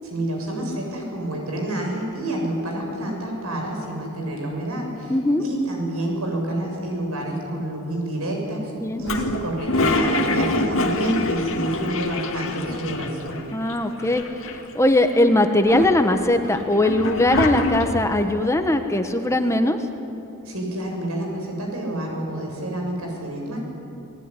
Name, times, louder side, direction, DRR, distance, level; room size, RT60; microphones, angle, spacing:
voice 1, 0.0-5.2 5.4-8.7 9.0-13.5 20.5-23.6, right 1 dB, 75° right, 1 dB, 7.2 m, -28 dB
voice 2, 5.1-5.4 8.8-9.0 13.5-14.2 14.7-19.8, left 1 dB, 15° left, 6 dB, 1.3 m, -20 dB
Toilet flush, 9.0-13.4 13.7-13.8 14.0-14.8 15.3-18.2, left 2 dB, 65° left, 2.3 m, -25 dB
28.5 x 19.5 x 10.0 m, 2.9 s
head